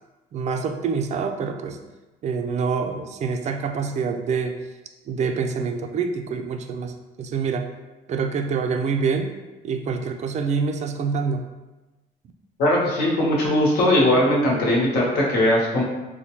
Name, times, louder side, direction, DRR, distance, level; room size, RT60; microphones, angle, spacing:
voice 1, 0.3-1.8 2.2-4.6 5.1-6.9 7.2-7.7 8.1-9.3 9.6-11.5, right 5 dB, 45° right, 6 dB, 0.4 m, -26 dB
voice 2, 12.6-15.8, left 1 dB, 70° left, -3 dB, 1.0 m, -19 dB
4.2 x 2.2 x 2.9 m, 1.1 s
cardioid pair, 110°, 17 cm